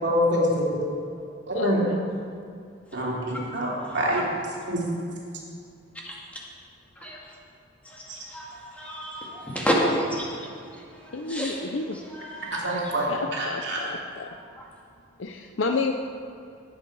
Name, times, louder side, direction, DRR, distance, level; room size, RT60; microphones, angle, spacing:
voice 1, 0.0-0.8 1.5-1.8 2.9-4.2 4.7-4.8 8.1-8.2 12.6-13.8, equal, 60° right, -4 dB, 2.9 m, -25 dB
voice 2, 1.5-2.1 11.1-12.0 13.1-14.3 15.2-15.9, left 3 dB, 75° left, 4 dB, 0.6 m, -30 dB
voice 3, 8.7-11.6 12.1-12.9, equal, 5° left, -4 dB, 2.2 m, -30 dB
18.5 x 8.0 x 4.8 m, 2.4 s
head